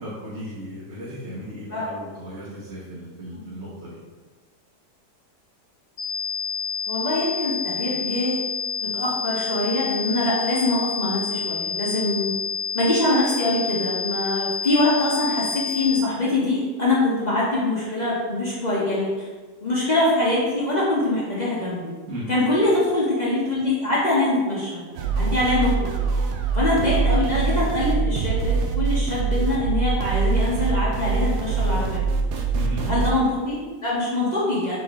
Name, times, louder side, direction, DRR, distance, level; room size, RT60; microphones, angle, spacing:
voice 1, 0.0-4.0 22.1-22.2 32.5-32.8, equal, 45° right, -9 dB, 1.3 m, -35 dB
sound 1, 6.0-16.0, left 6 dB, 75° left, 1.2 m, -29 dB
voice 2, 6.9-8.4 8.8-12.3 12.7-19.1 19.6-21.9 22.3-24.8 25.1-25.9 26.5-32.0 32.8-34.8, left 2 dB, 40° left, -6 dB, 0.6 m, -23 dB
sound 2, 24.9-33.1, right 4 dB, 75° right, 1.1 m, -23 dB
3.9 x 3.8 x 3.5 m, 1.4 s
omnidirectional pair, 1.8 m